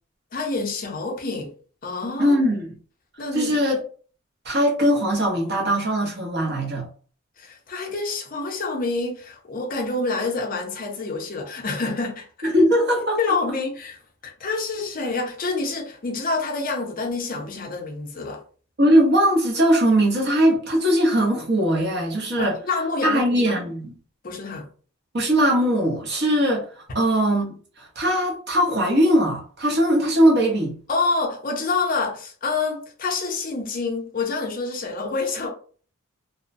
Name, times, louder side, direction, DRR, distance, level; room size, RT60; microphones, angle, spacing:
voice 1, 0.3-1.5 1.8-2.4 3.2-3.6 7.4-12.3 13.2-18.4 22.4-23.6 24.2-24.7 30.9-35.5, left 3 dB, 40° left, 0.5 m, -27 dB
voice 2, 2.2-2.8 3.3-3.8 4.4-6.9 12.4-13.3 18.8-22.5 23.0-23.9 25.1-26.6 26.9-30.8, equal, 50° right, 0.8 m, -20 dB
2.9 x 2.1 x 2.5 m
head